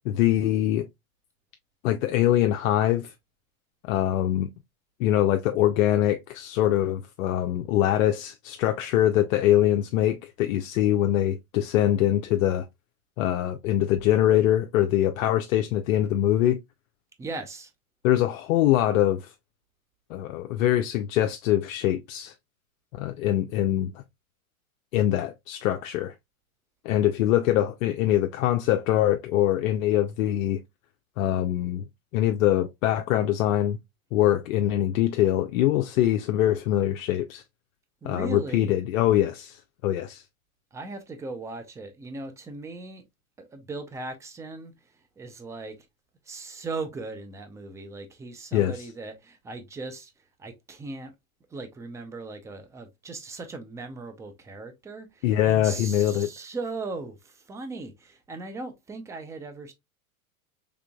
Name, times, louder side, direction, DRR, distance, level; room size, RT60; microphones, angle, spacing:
voice 1, 0.1-0.9 1.8-3.1 3.8-4.5 5.0-12.7 13.2-16.6 18.0-19.2 20.1-22.3 23.0-23.9 24.9-26.1 26.8-30.6 31.2-31.8 32.1-33.8 34.1-37.4 38.0-40.2 48.5-48.7 55.2-56.3, left 12 dB, 65° left, 0.6 m, -23 dB
voice 2, 17.2-17.7 38.0-38.8 40.7-43.0 43.4-45.8 46.3-50.1 50.4-51.1 51.5-59.7, right 3 dB, 10° right, 0.4 m, -38 dB
3.7 x 3.4 x 2.2 m
hypercardioid pair, 105°, 43 cm